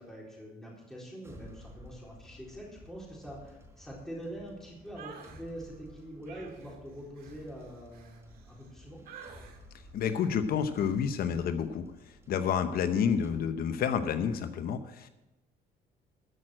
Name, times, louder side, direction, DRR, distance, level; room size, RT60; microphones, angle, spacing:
voice 1, 0.0-9.0, equal, 5° left, -4 dB, 4.0 m, -44 dB
sound 1, 1.2-13.4, equal, 15° right, 4.1 m, -54 dB
sound 2, 4.9-5.4 6.3-8.7 9.1-9.6 10.0-10.3 10.7-11.0, right 7 dB, 60° right, 2.1 m, -50 dB
voice 2, 9.9-15.1, left 7 dB, 60° left, 10 dB, 0.9 m, -29 dB
14.0 x 6.3 x 7.7 m, 0.99 s
cardioid pair, 110°, 17 cm